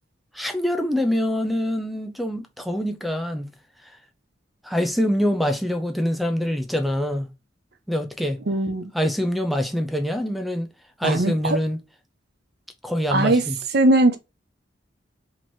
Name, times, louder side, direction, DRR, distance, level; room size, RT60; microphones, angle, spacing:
voice 1, 0.3-3.5 4.6-7.3 7.9-8.4 8.9-10.7 11.0-11.8 12.8-13.6, equal, ahead, 0.4 m, -25 dB
voice 2, 8.5-8.9 11.0-11.6 13.1-13.4 13.7-14.2, right 2 dB, 60° right, 0.7 m, -19 dB
3.0 x 2.8 x 4.4 m
head